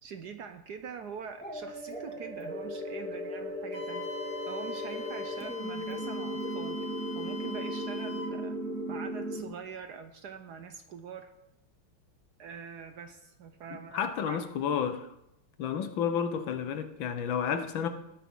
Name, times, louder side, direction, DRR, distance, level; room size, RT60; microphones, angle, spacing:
voice 1, 0.0-4.1 4.5-6.8 7.1-11.3 12.4-14.5, right 7 dB, 65° right, 8 dB, 1.1 m, -44 dB
sound 1, 1.4-9.4, equal, 5° left, 2.6 m, -36 dB
Wind instrument woodwind instrument, 3.7-8.4, left 4 dB, 45° left, 1.7 m, -43 dB
voice 2, 13.9-15.1 15.6-17.9, left 7 dB, 70° left, 9 dB, 1.6 m, -31 dB
19.0 x 9.8 x 3.8 m, 0.85 s
omnidirectional pair, 2.3 m